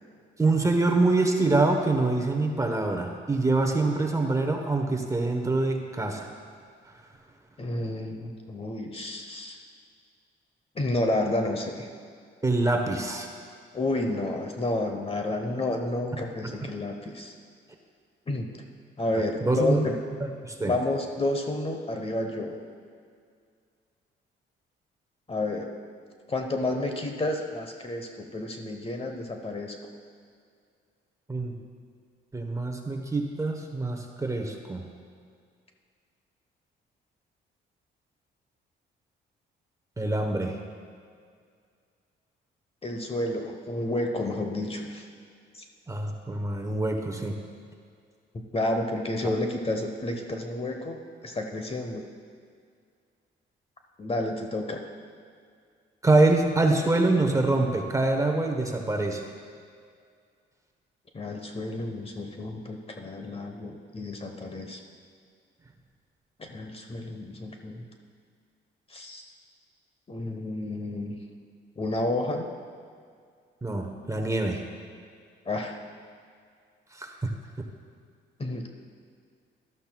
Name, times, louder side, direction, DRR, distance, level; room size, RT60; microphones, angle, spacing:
voice 1, 0.4-6.3 12.4-13.3 19.4-19.8 20.4-20.7 31.3-31.5 32.3-34.8 40.0-40.6 45.9-47.3 56.0-59.2 73.6-74.6 76.9-77.3, right 2 dB, 15° right, 3 dB, 1.0 m, -25 dB
voice 2, 7.6-9.6 10.7-11.9 13.7-17.3 18.3-18.5 19.0-20.0 20.6-22.6 25.3-25.7 26.3-29.8 42.8-45.1 48.5-52.0 54.0-54.8 61.1-64.8 66.4-67.8 68.9-69.2 70.1-71.2 71.8-72.5 75.5-75.8 78.4-78.7, left 2 dB, 30° left, 4 dB, 1.0 m, -30 dB
13.0 x 12.0 x 2.3 m, 2.2 s
cardioid pair, 90°, 20 cm